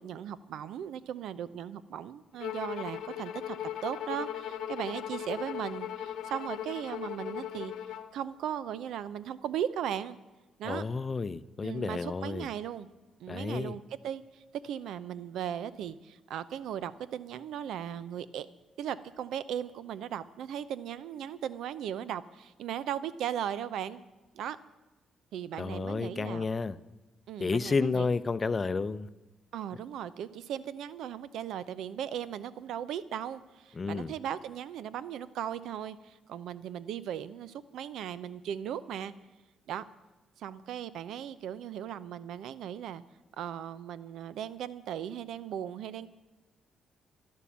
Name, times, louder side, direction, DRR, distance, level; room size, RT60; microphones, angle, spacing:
voice 1, 0.0-3.6 3.8-7.7 8.1-10.2 10.6-10.8 11.6-12.9 13.2-18.5 18.8-24.0 24.3-24.6 25.3-26.4 27.3-28.1 29.5-39.1 39.7-39.8 40.4-43.0 43.4-46.1, right 9 dB, 80° right, 15 dB, 0.7 m, -37 dB
Bowed string instrument, 2.4-8.1, left 10 dB, 85° left, 1.1 m, -38 dB
voice 2, 10.6-12.5 13.3-13.8 25.6-26.8 27.4-29.1 33.7-34.1, left 4 dB, 30° left, 15 dB, 0.6 m, -31 dB
12.5 x 11.5 x 7.4 m, 1.1 s
cardioid pair, 90°, 0 cm